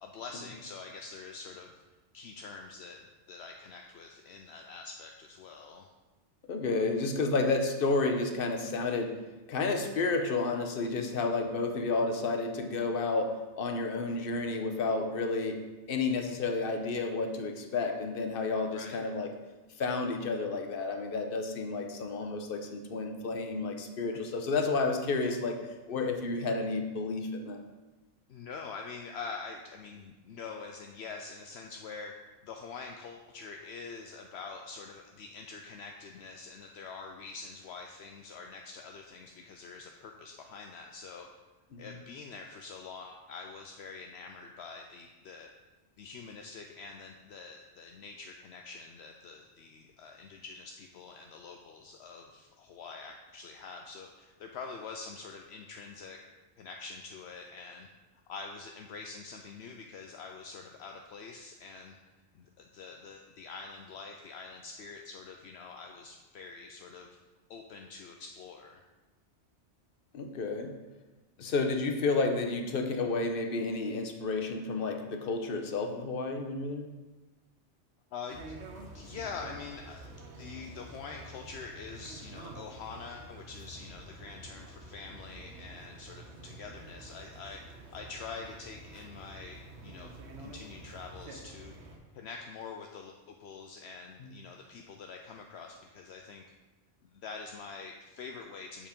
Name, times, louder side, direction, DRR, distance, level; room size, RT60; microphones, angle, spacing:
voice 1, 0.0-1.7 2.1-5.9 18.7-19.0 24.1-24.2 25.9-26.1 28.3-32.1 32.4-41.3 41.8-45.5 46.0-56.2 56.6-57.9 58.3-62.0 62.3-67.1 67.5-68.8 71.4-71.5 78.1-78.4 78.9-80.1 80.3-87.6 87.9-90.1 90.4-91.7 92.1-96.4 97.0-98.9, left 4 dB, 70° left, 2 dB, 0.8 m, -45 dB
voice 2, 6.5-9.2 9.5-15.6 15.9-19.3 19.8-25.6 25.9-27.6 41.7-42.0 70.1-70.7 71.4-76.9 94.2-94.3, left 3 dB, 55° left, 4 dB, 1.0 m, -31 dB
sound 1, 78.3-92.0, right 2 dB, 70° right, 1.3 m, -48 dB
7.3 x 5.1 x 5.2 m, 1.2 s
omnidirectional pair, 1.2 m